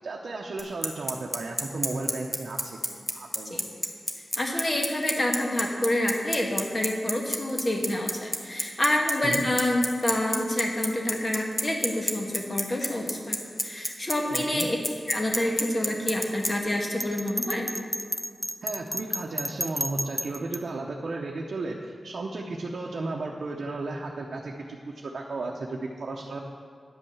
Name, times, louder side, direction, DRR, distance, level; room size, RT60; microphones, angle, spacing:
voice 1, 0.0-3.6 9.2-9.4 14.3-14.7 18.6-26.4, right 3 dB, 70° right, -1 dB, 0.8 m, -34 dB
Bicycle, 0.6-16.5, equal, 10° left, 1.1 m, -27 dB
voice 2, 4.3-13.4 13.6-14.8 15.1-17.7, left 1 dB, 35° left, 1 dB, 1.6 m, -27 dB
Bell, 17.0-20.6, equal, 5° right, 0.4 m, -31 dB
10.0 x 5.4 x 7.1 m, 2.2 s
cardioid pair, 60°, 0 cm